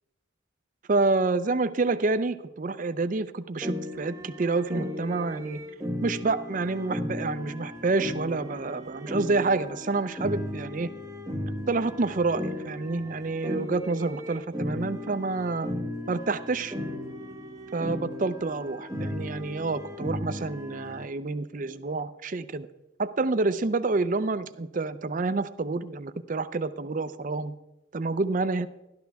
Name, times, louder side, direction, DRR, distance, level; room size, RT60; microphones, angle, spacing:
voice 1, 0.9-5.6 6.0-10.9 11.7-15.7 16.1-16.7 17.7-22.7 23.0-27.5 27.9-28.7, right 3 dB, 40° right, 13 dB, 0.5 m, -28 dB
sound 1, 3.6-21.1, left 1 dB, 15° right, 1.0 m, -36 dB
12.5 x 12.5 x 3.5 m, 0.91 s
head